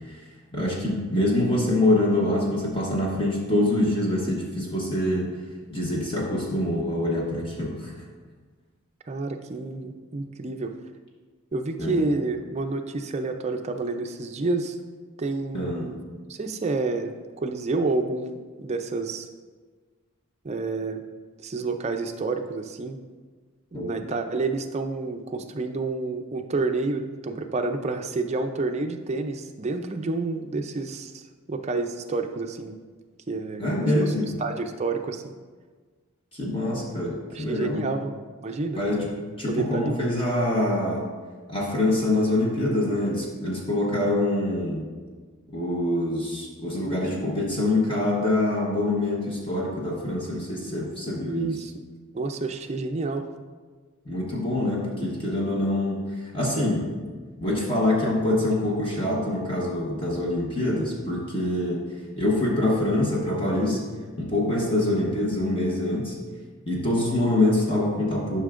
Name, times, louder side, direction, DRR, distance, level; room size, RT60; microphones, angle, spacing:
voice 1, 0.5-5.3 5.7-7.9 11.8-12.0 15.5-15.9 23.7-24.0 33.6-34.3 36.3-37.8 38.8-39.1 39.4-41.1 41.5-44.8 45.5-51.5 54.0-57.0 57.4-61.9 62.2-63.8 64.2-66.2 66.7-68.4, left 1 dB, 25° left, -3 dB, 1.0 m, -25 dB
voice 2, 9.1-10.7 11.5-14.8 15.2-16.0 16.3-19.3 20.4-21.0 21.4-23.0 23.7-32.8 33.3-34.1 34.4-35.3 37.3-38.8 39.5-39.9 51.2-51.7 52.1-53.3, right 3 dB, 30° right, 6 dB, 0.4 m, -29 dB
11.0 x 5.7 x 2.5 m, 1.5 s
head